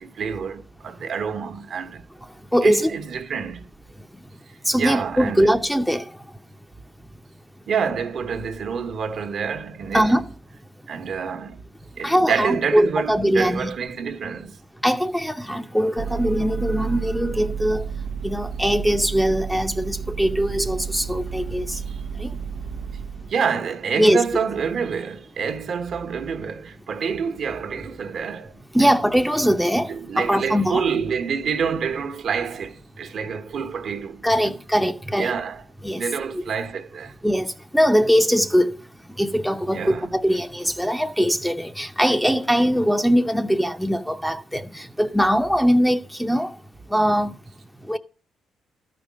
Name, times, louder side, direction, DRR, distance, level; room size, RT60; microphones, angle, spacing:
voice 1, 0.0-2.0 2.6-3.7 4.7-5.6 7.7-10.2 10.9-11.6 12.0-14.6 23.3-28.9 29.7-34.5 35.1-35.6 35.9-37.1 39.7-40.1, right 6 dB, 60° right, 1.2 m, -27 dB
voice 2, 2.5-2.9 4.7-6.1 9.9-10.3 12.0-13.7 14.8-17.8 18.2-21.8 22.2-22.3 24.0-24.2 28.7-30.8 34.2-35.4 35.8-36.0 36.3-36.4 37.2-38.8 39.2-46.5 46.9-47.3 47.9-48.0, equal, ahead, 0.7 m, -21 dB
Vehicle, 16.0-23.3, right 6 dB, 85° right, 0.7 m, -31 dB
12.5 x 5.1 x 7.4 m
cardioid pair, 90°, 0 cm